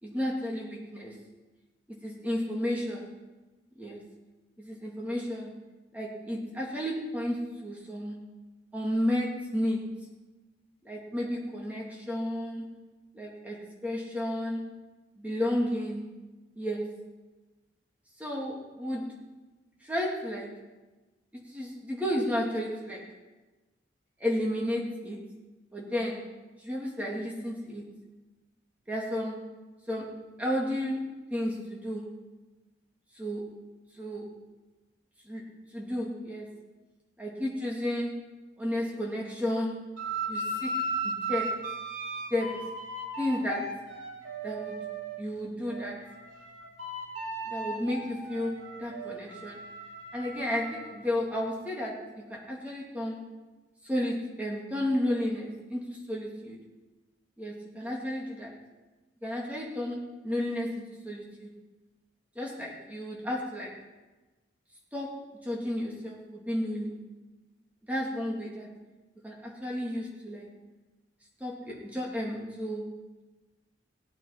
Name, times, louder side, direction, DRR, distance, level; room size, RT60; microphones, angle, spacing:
voice 1, 0.0-1.2 1.9-3.1 3.8-4.0 4.6-5.5 5.9-8.3 8.7-9.9 10.8-12.7 13.1-14.7 15.2-16.1 16.6-17.0 18.2-19.2 19.8-20.5 21.3-23.1 24.2-25.2 25.7-26.2 26.6-27.9 28.9-29.4 29.9-30.1 30.4-32.2 33.2-33.5 34.0-34.3 35.3-35.4 35.7-36.5 37.2-38.3 38.6-39.9 40.3-40.7 41.0-41.6 42.3-42.6 43.2-43.8 44.4-44.8 45.2-46.1 47.4-49.6 50.1-53.3 53.8-56.6 57.4-58.5 59.2-61.5 62.4-63.8 64.9-67.0 67.9-68.7 69.2-70.5 71.4-73.0, left 1 dB, 10° right, -3 dB, 2.2 m, -32 dB
sound 1, 40.0-45.2 45.6-50.9, right 2 dB, 90° right, 3.0 m, -36 dB
17.5 x 9.0 x 4.4 m, 1.2 s
head